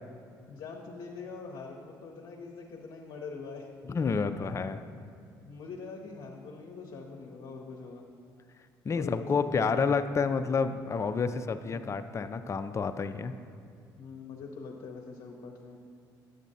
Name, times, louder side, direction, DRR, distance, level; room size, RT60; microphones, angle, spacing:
voice 1, 0.5-3.7 5.4-8.1 8.9-9.9 11.6-11.9 14.0-15.8, left 4 dB, 60° left, 0 dB, 0.7 m, -43 dB
voice 2, 3.9-4.8 8.9-13.3, left 5 dB, 30° left, 9 dB, 0.4 m, -29 dB
7.8 x 7.2 x 2.7 m, 2.3 s
hypercardioid pair, 55°, 10 cm